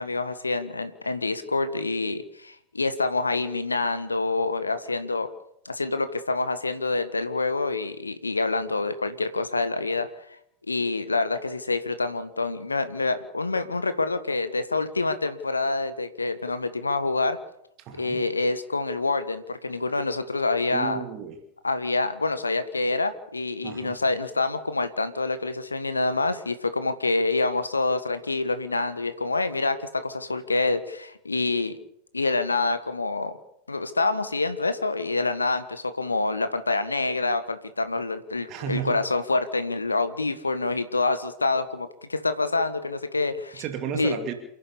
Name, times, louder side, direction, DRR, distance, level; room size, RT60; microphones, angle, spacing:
voice 1, 0.0-5.3 5.6-10.1 10.7-17.4 17.9-21.0 21.6-31.8 32.1-33.3 33.7-43.6 43.9-44.2, left 3 dB, 80° left, 11 dB, 1.5 m, -27 dB
voice 2, 17.8-18.2 20.7-21.4 23.6-24.0 38.5-39.0 43.6-44.3, right 9 dB, 35° right, 7 dB, 2.5 m, -33 dB
28.5 x 11.5 x 8.5 m, 0.76 s
figure-of-eight pair, 90°, 0 cm